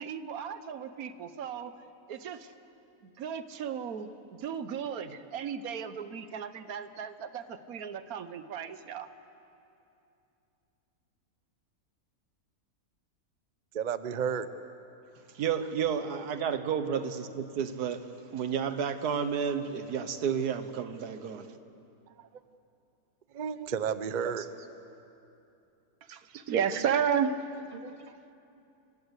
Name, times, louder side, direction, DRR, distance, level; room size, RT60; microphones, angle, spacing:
voice 1, 0.0-1.7 2.1-2.5 3.0-9.1 26.0-27.3 28.0-28.2, right 8 dB, 70° right, 1.4 m, -34 dB
voice 2, 13.7-14.5 23.3-24.5 27.8-28.0, right 7 dB, 45° right, 0.6 m, -32 dB
voice 3, 15.4-21.5 24.2-24.4, right 7 dB, 90° right, 1.6 m, -31 dB
28.0 x 16.5 x 8.2 m
omnidirectional pair, 1.6 m